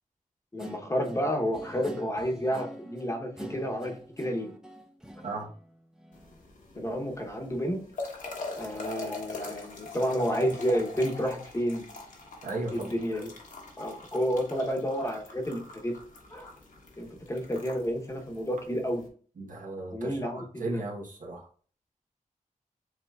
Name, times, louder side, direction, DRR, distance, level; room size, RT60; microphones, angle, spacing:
voice 1, 0.5-4.5 6.7-7.8 8.6-11.9 12.7-13.3 13.8-16.0 16.3-16.5 17.0-19.0 19.9-20.8, equal, 20° left, 1 dB, 0.9 m, -30 dB
Guitar, 0.6-6.4, right 1 dB, 5° right, 0.6 m, -46 dB
sound 1, 6.1-19.1, left 3 dB, 70° left, 1.1 m, -44 dB
voice 2, 12.4-12.9 19.4-21.5, right 2 dB, 70° right, -1 dB, 1.1 m, -36 dB
7.6 x 2.9 x 2.4 m, 0.44 s
wide cardioid pair, 120°, 14 cm